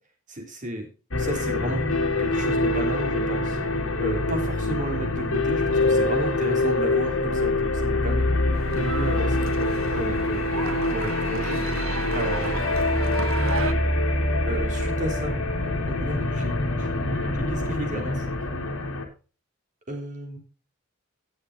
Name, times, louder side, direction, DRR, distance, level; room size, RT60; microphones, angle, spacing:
voice 1, 0.3-0.9 1.2-1.9 2.2-3.6 4.0-8.4 8.7-10.4 10.9-11.6 12.1-12.9 14.5-15.4 15.6-16.9 17.3-18.3 19.9-20.4, equal, 35° right, 2 dB, 3.3 m, -33 dB
sound 1, 1.1-19.1, left 2 dB, 70° left, 2.2 m, -25 dB
sound 2, 8.5-13.7, right 4 dB, 75° right, 1.3 m, -34 dB
17.5 x 7.0 x 2.6 m, 0.34 s
head